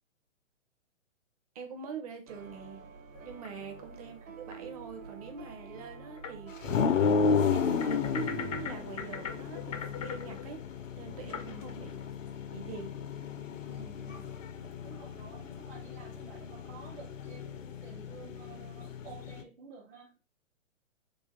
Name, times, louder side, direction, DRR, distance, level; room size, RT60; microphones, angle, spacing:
voice 1, 1.5-2.9 3.2-10.6 11.0-12.0 12.5-12.9, right 6 dB, 30° right, 0.6 m, -44 dB
sound 1, 2.3-9.9, right 5 dB, 85° right, 0.8 m, -48 dB
sound 2, 3.1-3.8 4.5-4.6 5.5-5.6 6.2-6.3 6.7-6.8 7.6-12.0, left 7 dB, 30° left, 0.4 m, -42 dB
sound 3, 6.6-19.4, left 5 dB, 75° left, 0.6 m, -33 dB
voice 2, 11.2-11.7 13.7-14.3 14.7-20.1, right 5 dB, 55° right, 1.0 m, -51 dB
3.3 x 2.4 x 3.5 m
figure-of-eight pair, 130°, 38 cm